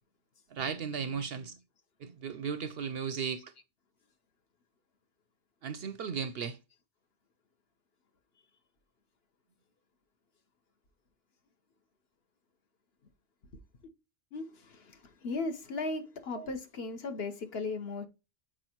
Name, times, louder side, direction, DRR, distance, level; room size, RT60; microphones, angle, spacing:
voice 1, 0.5-1.6 2.0-3.5 5.6-6.6 16.4-16.5, right 6 dB, 60° right, 0.7 m, -36 dB
voice 2, 14.3-18.1, left 3 dB, 55° left, 1.2 m, -37 dB
7.4 x 4.8 x 2.9 m
omnidirectional pair, 1.3 m